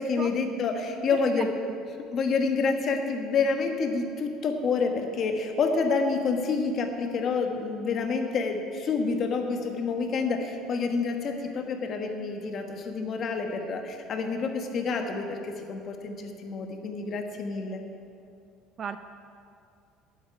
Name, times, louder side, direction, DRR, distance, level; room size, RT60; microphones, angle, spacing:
voice 1, 0.0-1.5 2.1-17.8, left 4 dB, 35° left, 4 dB, 1.2 m, -28 dB
voice 2, 1.1-1.8 18.8-19.0, right 7 dB, 30° right, 10 dB, 0.4 m, -35 dB
9.0 x 8.2 x 9.0 m, 2.4 s
cardioid pair, 160°, 0 cm